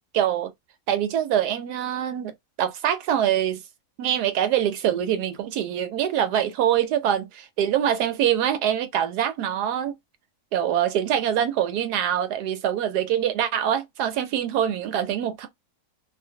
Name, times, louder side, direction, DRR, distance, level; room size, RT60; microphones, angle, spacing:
voice 1, 0.1-0.5 0.9-2.3 2.6-3.6 4.0-9.9 10.5-15.5, right 10 dB, 85° right, 1.2 m, -24 dB
2.8 x 2.2 x 2.7 m
omnidirectional pair, 1.7 m